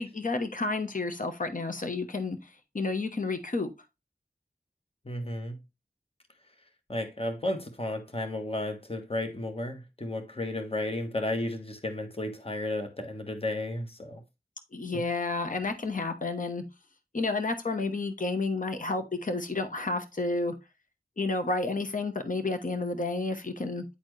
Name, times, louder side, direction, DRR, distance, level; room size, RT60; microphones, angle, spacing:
voice 1, 0.0-3.7 14.7-16.6 17.1-20.5 21.2-23.8, left 3 dB, 55° left, 1.0 m, -31 dB
voice 2, 5.0-5.6 6.9-14.2 14.9-15.0, left 1 dB, 35° left, 1.4 m, -33 dB
9.6 x 4.2 x 3.2 m
wide cardioid pair, 55°, 16 cm